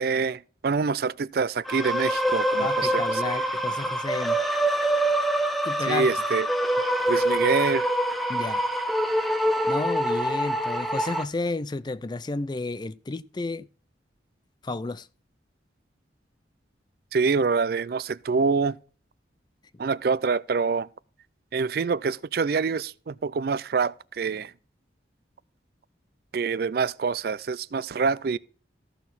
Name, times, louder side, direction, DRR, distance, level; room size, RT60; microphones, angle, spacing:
voice 1, 0.0-3.4 5.9-6.5 7.1-7.9 17.1-18.8 19.8-20.9 21.5-24.5 26.3-28.4, right 5 dB, 55° right, 0.4 m, -26 dB
sound 1, 1.7-11.2, right 1 dB, ahead, 0.8 m, -25 dB
voice 2, 2.6-4.4 5.6-6.1 8.3-8.7 9.7-13.7 14.6-15.1, left 3 dB, 25° left, 0.4 m, -31 dB
14.5 x 6.3 x 4.0 m
head